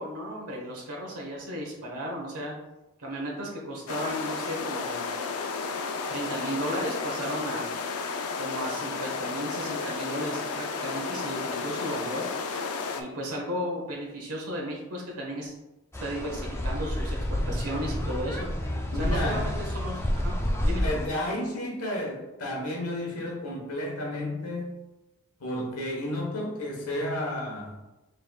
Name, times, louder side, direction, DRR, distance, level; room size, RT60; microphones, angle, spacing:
voice 1, 0.0-2.5 3.0-5.1 6.1-7.7 8.4-12.3 13.0-15.5 16.0-18.5 18.9-20.3 20.6-20.8, equal, 75° right, -2 dB, 1.2 m, -34 dB
sound 1, 3.9-13.0, left 4 dB, 70° left, 0.5 m, -33 dB
sound 2, 15.9-21.1, equal, 10° left, 0.4 m, -29 dB
voice 2, 18.9-19.5 20.6-24.8 25.4-27.8, left 1 dB, 90° left, 0 dB, 1.1 m, -32 dB
5.3 x 3.4 x 2.3 m, 1.0 s
head